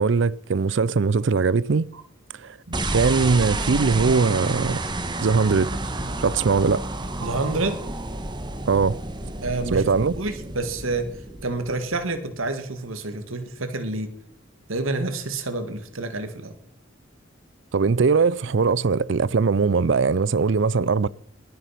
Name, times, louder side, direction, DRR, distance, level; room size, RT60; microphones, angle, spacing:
voice 1, 0.0-1.9 2.4-2.5 2.9-4.8 5.2-5.7 6.2-6.8 8.7-9.0 9.7-10.1 17.7-21.1, right 4 dB, 65° right, 0.5 m, -20 dB
sound 1, 2.7-12.1, right 2 dB, 20° right, 1.3 m, -30 dB
voice 2, 7.2-7.8 9.4-11.1 11.4-14.1 14.7-16.5, right 2 dB, 85° right, 1.9 m, -28 dB
20.0 x 9.4 x 5.8 m
head